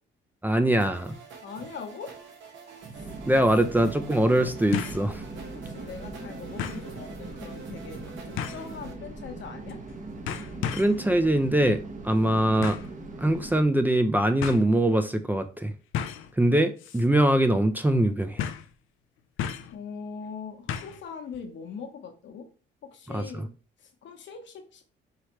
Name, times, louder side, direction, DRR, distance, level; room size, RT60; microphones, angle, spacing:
voice 1, 0.4-1.1 3.3-5.2 10.7-11.8 12.0-12.8 13.2-15.7 16.4-18.4 23.1-23.2, right 1 dB, 10° right, 8 dB, 0.4 m, -22 dB
sound 1, 0.8-8.9, right 5 dB, 75° right, 1.1 m, -46 dB
voice 2, 1.4-2.1 5.6-9.8 19.7-22.5 22.9-23.5 23.8-24.8, left 6 dB, 70° left, 4 dB, 1.0 m, -41 dB
sound 2, 2.8-2.9 4.7-5.1 5.5-5.6 6.6-6.9 8.4-8.7 9.7-9.9 10.3-11.0 12.6-12.9 13.9-14.0 14.4-14.6 15.9-16.3 16.8-17.1 17.3-17.4 18.4-18.7 19.4-19.8 20.7-21.0 21.3-21.4, left 9 dB, 85° left, 0.5 m, -33 dB
sound 3, 2.9-13.6, right 3 dB, 40° right, 0.9 m, -40 dB
4.8 x 3.1 x 3.0 m, 0.36 s
cardioid pair, 90°, 20 cm